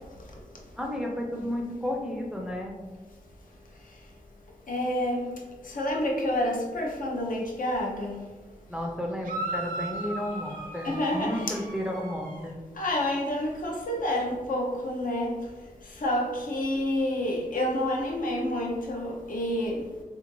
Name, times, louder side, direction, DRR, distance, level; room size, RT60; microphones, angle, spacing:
voice 1, 0.8-2.8 8.7-12.6, equal, 5° right, 0 dB, 0.4 m, -32 dB
voice 2, 4.7-5.3 5.7-8.2 10.8-11.5 12.8-15.3 16.0-19.8, left 1 dB, 75° left, -1 dB, 0.7 m, -28 dB
sound 1, 9.2-12.5, right 2 dB, 85° right, 0.6 m, -37 dB
3.5 x 2.6 x 2.9 m, 1.2 s
wide cardioid pair, 120°, 14 cm